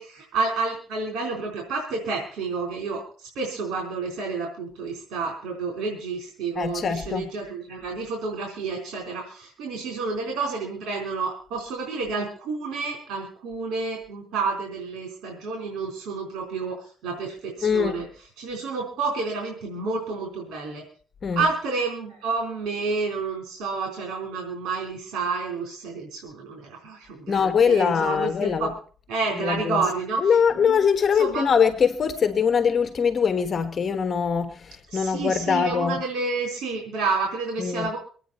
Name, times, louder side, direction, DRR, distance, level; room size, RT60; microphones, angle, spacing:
voice 1, 0.0-18.1 18.4-20.8 21.4-28.7 29.1-30.8 31.2-31.5 34.9-38.0, right 4 dB, 90° right, 4.0 m, -30 dB
voice 2, 6.5-7.3 17.6-17.9 21.2-21.5 27.3-28.7 29.4-29.8 30.2-34.6 34.9-36.0 37.6-37.9, left 6 dB, 45° left, 1.2 m, -22 dB
25.0 x 9.1 x 4.3 m
cardioid pair, 90°, 0 cm